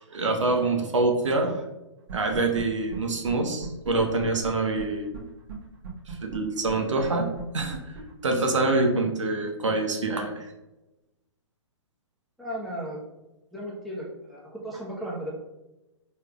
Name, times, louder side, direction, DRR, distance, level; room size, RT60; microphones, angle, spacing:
voice 1, 0.1-1.6 2.1-5.1 6.1-8.0 8.2-10.5, right 2 dB, 80° right, 3 dB, 0.8 m, -26 dB
sound 1, 2.1-2.6 2.9-3.0 3.3-3.4 3.6-5.2 5.5-5.6 5.8-8.8, right 6 dB, 60° right, 1.2 m, -39 dB
voice 2, 12.4-13.0 13.5-15.3, equal, ahead, -6 dB, 1.0 m, -35 dB
4.6 x 3.3 x 2.3 m, 1.0 s
hypercardioid pair, 125°, 15 cm